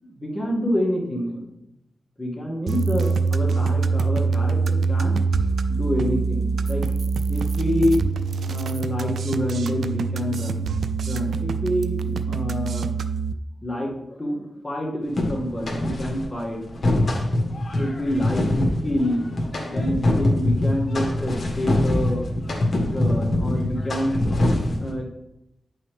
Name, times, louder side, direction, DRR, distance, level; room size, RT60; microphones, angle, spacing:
voice 1, 0.0-1.4 2.2-6.8 7.3-8.0 8.4-10.6 11.1-12.9 13.6-16.6 17.7-22.3 22.7-24.2 24.8-25.1, equal, 20° left, -2 dB, 2.1 m, -27 dB
sound 1, 2.7-13.3, right 4 dB, 90° right, 0.4 m, -24 dB
sound 2, 15.2-16.3 16.6-24.9, left 1 dB, 50° left, 1.7 m, -23 dB
9.1 x 5.6 x 3.4 m, 0.87 s
wide cardioid pair, 80°, 0 cm